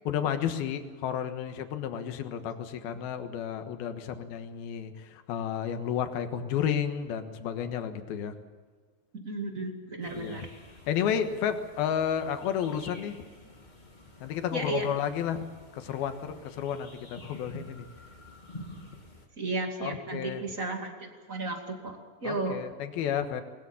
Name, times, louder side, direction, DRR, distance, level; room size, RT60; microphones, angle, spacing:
voice 1, 0.0-8.3 10.1-10.4 10.9-13.2 14.2-15.4 15.7-17.9 19.8-20.4 22.2-23.4, left 8 dB, 85° left, 8 dB, 3.3 m, -32 dB
voice 2, 9.1-10.5 14.5-14.9 19.4-22.6, right 2 dB, 25° right, 4 dB, 2.2 m, -34 dB
sound 1, 10.0-19.3, left 1 dB, 15° left, 1.6 m, -49 dB
20.5 x 20.0 x 7.2 m, 1.5 s
omnidirectional pair, 4.3 m